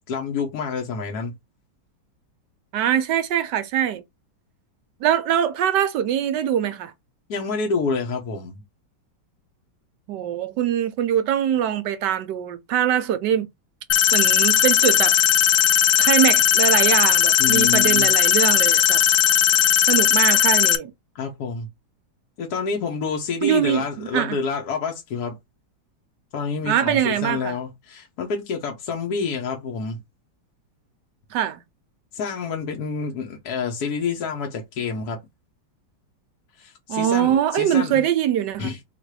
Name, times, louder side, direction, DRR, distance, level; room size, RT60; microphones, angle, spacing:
voice 1, 0.1-1.3 7.3-8.6 17.4-18.1 21.1-21.7 22.4-25.4 26.3-30.0 32.1-35.2 36.6-38.0 38.6-38.8, left 5 dB, 60° left, 1.3 m, -28 dB
voice 2, 2.7-4.0 5.0-6.9 10.1-13.5 14.1-15.2 16.0-19.0 19.9-20.9 23.4-24.4 26.6-27.5 31.3-31.6 36.9-38.7, right 10 dB, 70° right, 1.1 m, -22 dB
sound 1, 13.9-20.8, left 11 dB, 85° left, 1.4 m, -17 dB
4.0 x 2.5 x 4.6 m
omnidirectional pair, 2.1 m